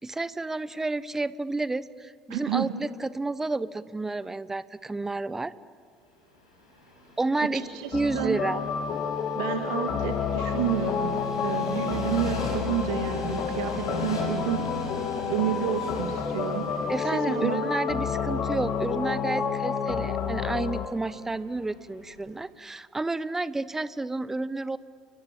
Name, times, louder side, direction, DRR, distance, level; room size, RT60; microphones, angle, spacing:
voice 1, 0.0-5.5 7.2-7.6 7.9-8.6 16.9-24.8, right 2 dB, 15° right, 17 dB, 1.0 m, -30 dB
voice 2, 2.3-2.7 7.4-7.9 8.1-8.4 9.3-15.0 15.3-17.7, right 11 dB, 65° right, 6 dB, 2.0 m, -30 dB
Train, 6.3-22.4, left 1 dB, 80° left, 6.7 m, -41 dB
sound 1, 7.9-20.9, left 7 dB, 50° left, 2.7 m, -30 dB
30.0 x 22.5 x 8.7 m, 2.1 s
figure-of-eight pair, 60°, 3 cm